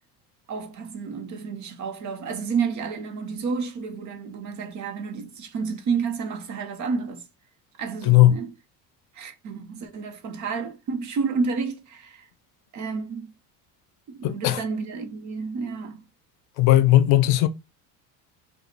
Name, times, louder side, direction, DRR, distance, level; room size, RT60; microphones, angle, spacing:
voice 1, 0.5-7.3 7.8-8.5 9.1-12.3 12.7-13.3 14.1-16.0, right 5 dB, 45° right, 1.1 m, -30 dB
voice 2, 8.0-8.4 14.2-14.6 16.6-17.5, left 14 dB, 65° left, 0.6 m, -17 dB
4.7 x 2.4 x 3.2 m
cardioid pair, 125°, 41 cm